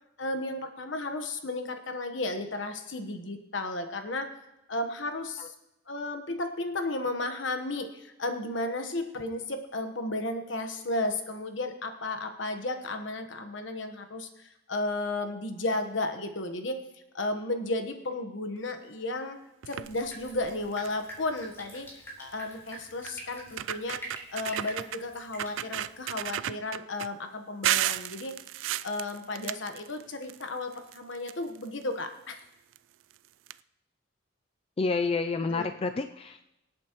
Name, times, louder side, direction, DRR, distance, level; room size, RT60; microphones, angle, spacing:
voice 1, 0.2-4.3 4.7-5.5 5.9-16.8 17.1-19.4 19.7-21.9 22.2-24.0 24.3-28.4 28.8-32.4 35.5-35.7, left 2 dB, 65° left, 7 dB, 1.2 m, -33 dB
sound 1, 19.6-20.0 20.5-20.6 20.8-21.1 22.3-22.4 23.1-23.2 23.5-25.0 25.4-27.1 27.6-30.4 30.7-31.8 32.7-32.8 33.1-33.2 33.5-33.6, right 12 dB, 70° right, 0.3 m, -33 dB
Drip, 19.8-26.4, right 1 dB, 15° left, 3.6 m, -46 dB
voice 2, 34.8-36.4, left 4 dB, 30° left, 8 dB, 0.3 m, -29 dB
25.0 x 8.5 x 3.0 m, 0.89 s
head